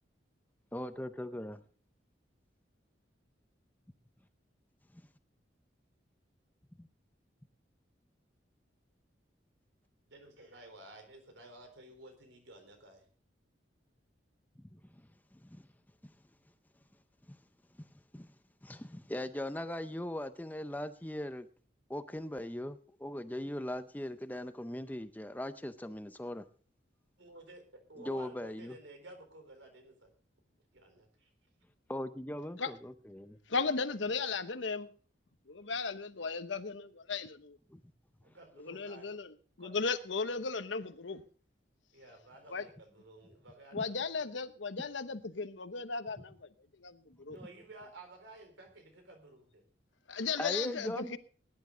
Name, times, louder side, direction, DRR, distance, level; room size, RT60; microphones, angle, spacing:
voice 1, 0.7-1.6 4.9-5.0 6.8-6.9 14.7-15.0 15.3-15.6 16.0-16.1 17.3-17.4 17.8-17.9 18.1-18.3 18.6-21.5 21.9-26.4 28.0-28.8 31.9-33.4 37.7-37.8 50.4-51.2, left 1 dB, 10° left, 0.6 m, -40 dB
voice 2, 10.1-13.1 27.2-30.1 30.7-31.3 38.2-39.2 39.6-39.8 41.9-44.0 47.3-49.6, right 2 dB, 80° right, 4.0 m, -53 dB
voice 3, 33.5-34.9 35.5-37.6 38.6-39.3 39.6-41.2 42.5-42.6 43.7-46.5 46.8-47.4 50.1-51.2, left 4 dB, 80° left, 1.0 m, -36 dB
19.5 x 10.5 x 3.9 m
head